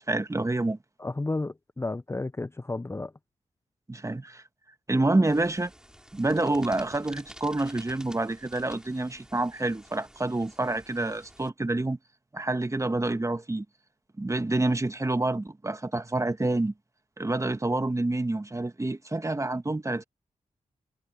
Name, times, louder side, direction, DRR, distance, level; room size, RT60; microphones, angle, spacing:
voice 1, 0.1-0.8 3.9-4.4 4.9-5.7 6.1-12.0 12.3-13.6 14.2-16.7 17.2-20.0, right 2 dB, 25° right, 1.5 m, -27 dB
voice 2, 1.0-3.1, left 2 dB, 20° left, 0.5 m, -32 dB
sound 1, 5.2-11.5, equal, 5° right, 5.2 m, -51 dB
cardioid pair, 45°, 13 cm